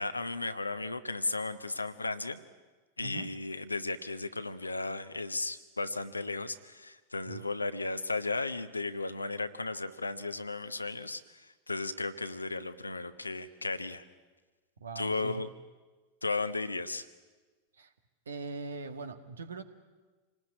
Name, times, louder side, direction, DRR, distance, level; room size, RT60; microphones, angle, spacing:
voice 1, 0.0-2.4 3.0-11.4 11.7-14.0 14.9-15.5 16.2-17.1, left 3 dB, 80° left, 11 dB, 1.1 m, -35 dB
voice 2, 14.8-15.4 17.8-17.9 18.3-19.6, right 4 dB, 70° right, 9 dB, 1.7 m, -41 dB
27.0 x 19.5 x 9.6 m, 1.3 s
figure-of-eight pair, 90°, 0 cm